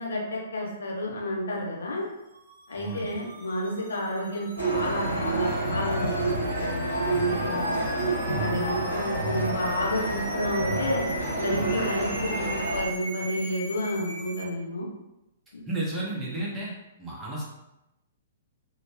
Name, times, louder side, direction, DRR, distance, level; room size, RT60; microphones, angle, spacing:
voice 1, 0.0-2.0 2.7-7.8 8.4-11.0 11.4-14.9 15.5-15.6, left 1 dB, 65° left, -3 dB, 0.7 m, -31 dB
sound 1, 2.2-14.5, right 1 dB, 45° right, 0.9 m, -40 dB
voice 2, 2.7-3.1 8.8-9.0 15.7-16.7 17.0-17.4, right 2 dB, 15° right, -6 dB, 0.9 m, -33 dB
sound 2, 4.6-12.8, right 2 dB, 90° left, 1.1 m, -28 dB
3.0 x 2.2 x 2.9 m, 0.93 s
figure-of-eight pair, 115°, 0 cm